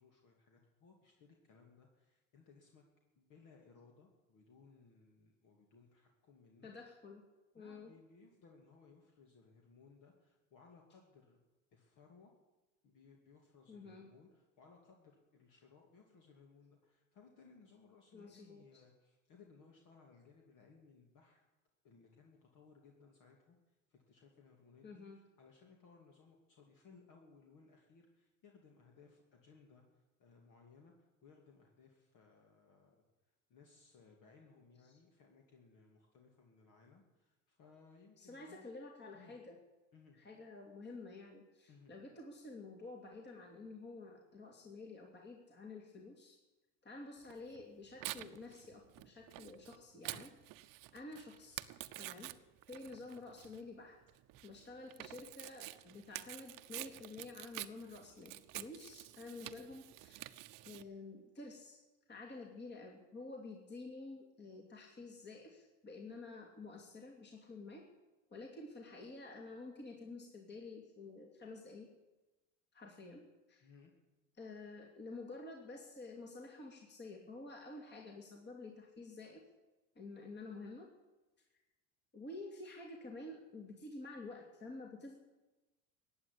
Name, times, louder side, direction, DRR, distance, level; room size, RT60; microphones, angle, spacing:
voice 1, 0.0-2.8 3.2-6.7 7.6-11.4 11.7-12.3 12.8-21.4 21.8-33.0 33.5-38.7 39.1-39.4 39.9-40.2 41.7-41.9 73.6-73.9, left 4 dB, 50° left, 1 dB, 2.7 m, -63 dB
voice 2, 6.6-7.2 7.5-7.9 13.7-14.1 18.1-18.8 24.8-25.2 38.2-39.6 40.2-46.4 46.8-50.3 50.9-51.7 52.0-52.3 52.7-54.0 54.4-60.3 60.6-61.8 62.1-67.9 68.3-71.9 72.7-73.7 74.4-79.4 80.0-80.9 82.1-85.1, left 3 dB, 25° left, 1 dB, 2.6 m, -50 dB
Tearing, 47.3-60.8, right 17 dB, 55° right, 0.9 m, -49 dB
15.5 x 8.9 x 10.0 m, 1.1 s
hypercardioid pair, 90°, 39 cm